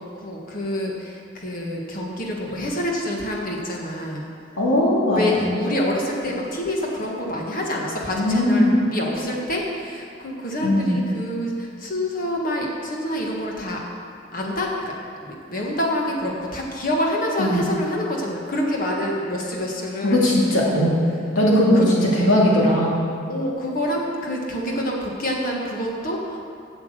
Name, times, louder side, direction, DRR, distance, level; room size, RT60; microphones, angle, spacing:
voice 1, 0.0-4.2 5.1-13.8 14.3-14.9 15.2-20.2 21.5-21.9 23.3-26.4, left 1 dB, 45° left, -1 dB, 1.7 m, -27 dB
voice 2, 4.6-5.5 8.1-8.8 10.6-11.0 17.4-17.6 20.0-21.0 21.3-23.0, left 1 dB, 80° left, -5 dB, 2.7 m, -19 dB
8.2 x 7.1 x 8.1 m, 2.5 s
head